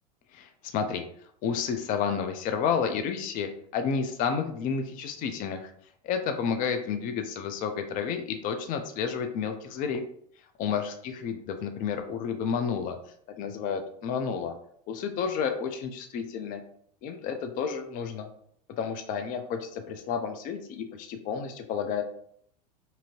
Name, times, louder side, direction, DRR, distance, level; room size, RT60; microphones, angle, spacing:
voice 1, 0.3-1.0 1.4-5.7 6.0-10.0 10.6-13.0 13.4-14.5 14.9-16.6 17.0-18.3 18.8-22.0, left 6 dB, 40° left, 7 dB, 0.4 m, -31 dB
2.7 x 2.6 x 2.9 m, 0.65 s
hypercardioid pair, 105°, 21 cm